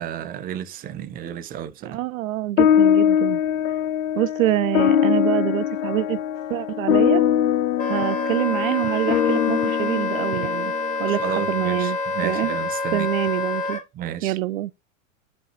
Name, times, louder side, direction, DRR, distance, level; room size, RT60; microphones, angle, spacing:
voice 1, 0.0-2.0 11.0-13.1 13.9-14.4, right 10 dB, 20° right, 0.6 m, -32 dB
voice 2, 1.8-3.4 4.1-6.2 6.5-7.3 7.9-10.7 11.0-12.0 12.2-12.6 12.9-13.8 14.2-14.7, right 15 dB, 75° right, 0.5 m, -25 dB
sound 1, 2.6-11.2, left 9 dB, 75° left, 0.6 m, -22 dB
Wind instrument woodwind instrument, 7.8-13.8, left 3 dB, 20° left, 1.5 m, -27 dB
5.6 x 3.2 x 5.4 m
hypercardioid pair, 110°, 41 cm